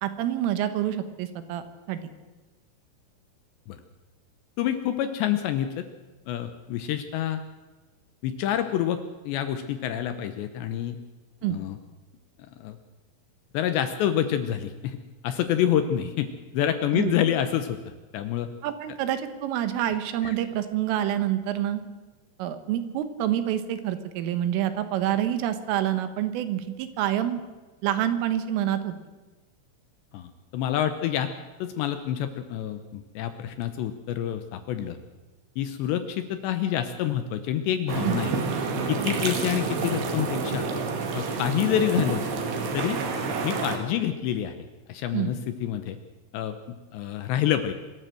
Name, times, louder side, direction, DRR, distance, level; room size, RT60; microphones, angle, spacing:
voice 1, 0.0-1.6 1.9-2.0 11.4-11.6 16.9-17.1 18.6-21.8 22.4-27.4 27.8-28.9 38.0-38.2 45.1-45.3, right 11 dB, 80° right, 10 dB, 3.8 m, -27 dB
voice 2, 4.6-5.8 6.3-7.4 8.2-9.0 9.3-11.0 11.5-11.8 12.6-12.8 13.5-15.0 15.2-17.8 18.1-18.5 20.2-20.3 30.1-31.3 31.6-35.0 35.6-38.3 38.9-40.7 41.1-42.2 42.7-43.0 43.4-44.5 44.9-46.0 46.3-46.6 46.9-47.7, left 10 dB, 75° left, 9 dB, 2.7 m, -27 dB
sound 1, 37.9-43.8, right 4 dB, 60° right, 3.9 m, -29 dB
25.0 x 13.5 x 7.7 m, 1.2 s
omnidirectional pair, 5.9 m